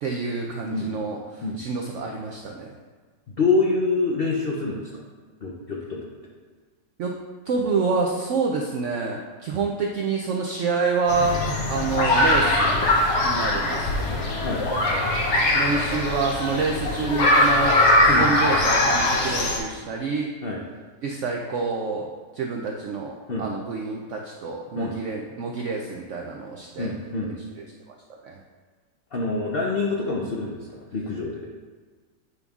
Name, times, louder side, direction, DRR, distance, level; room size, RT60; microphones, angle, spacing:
voice 1, 0.0-2.7 7.0-7.2 7.5-12.9 13.2-14.2 15.5-20.3 21.0-22.1 22.3-26.9 27.6-28.0 28.2-28.4, right 4 dB, 80° right, 0 dB, 0.6 m, -27 dB
voice 2, 3.4-5.0 5.4-6.1 14.4-14.7 18.1-18.3 20.4-20.6 23.3-23.5 24.7-24.9 26.8-27.3 29.1-31.4, left 3 dB, 75° left, -2 dB, 0.5 m, -26 dB
sound 1, 11.1-19.6, left 1 dB, 55° left, 0.9 m, -21 dB
8.3 x 5.2 x 2.4 m, 1.4 s
omnidirectional pair, 1.8 m